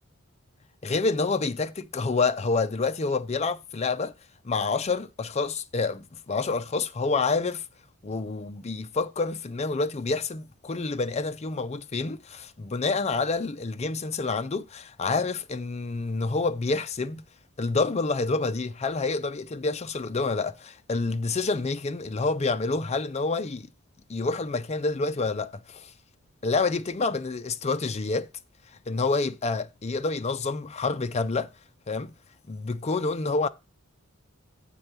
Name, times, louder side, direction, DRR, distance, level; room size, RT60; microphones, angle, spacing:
voice 1, 0.8-4.1 4.4-7.6 8.0-17.2 17.6-23.7 24.1-25.9 26.4-28.3 28.9-31.5 31.9-32.1 32.5-33.5, left 3 dB, 30° left, 0.5 m, -28 dB
7.5 x 4.4 x 6.7 m
head